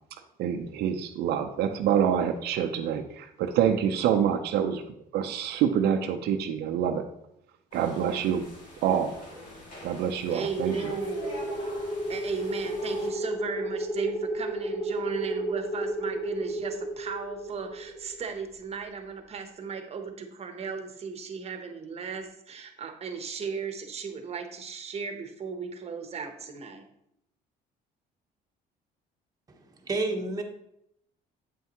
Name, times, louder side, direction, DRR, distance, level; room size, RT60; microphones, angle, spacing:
voice 1, 0.4-4.8 5.1-7.0 7.7-8.4 8.8-9.1 9.8-10.9, right 8 dB, 75° right, 5 dB, 0.6 m, -26 dB
sound 1, 7.7-13.1, left 1 dB, 50° left, 2.6 m, -44 dB
voice 2, 10.3-11.6 12.1-26.9, right 5 dB, 40° right, 6 dB, 1.0 m, -36 dB
sound 2, 10.5-18.5, right 1 dB, 15° left, 0.8 m, -33 dB
voice 3, 29.5-30.4, right 2 dB, 20° right, 2 dB, 1.1 m, -30 dB
8.4 x 5.6 x 3.0 m, 0.77 s
cardioid pair, 110°, 17 cm